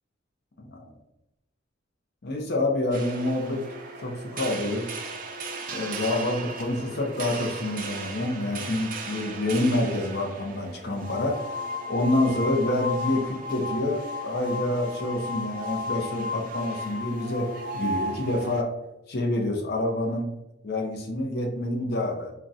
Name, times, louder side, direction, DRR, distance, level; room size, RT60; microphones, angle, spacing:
voice 1, 0.6-0.9 2.2-3.6 4.0-4.9 5.7-11.4 11.9-17.5 17.7-18.7 19.1-20.3 20.6-22.3, left 1 dB, 55° left, 1 dB, 0.6 m, -27 dB
sound 1, 2.9-18.6, left 1 dB, 45° right, 0.5 m, -35 dB
3.9 x 2.2 x 2.4 m, 0.88 s
head